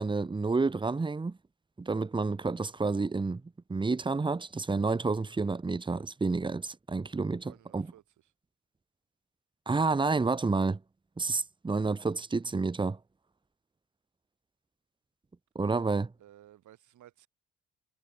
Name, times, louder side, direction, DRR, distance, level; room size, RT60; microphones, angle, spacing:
voice 1, 0.0-1.4 1.8-3.4 3.7-7.9 9.7-10.8 11.2-13.0 15.5-16.1, right 3 dB, 15° right, 0.8 m, -29 dB
voice 2, 7.4-8.3 16.2-17.3, right 12 dB, 75° right, 5.5 m, -57 dB
cardioid pair, 90°, 30 cm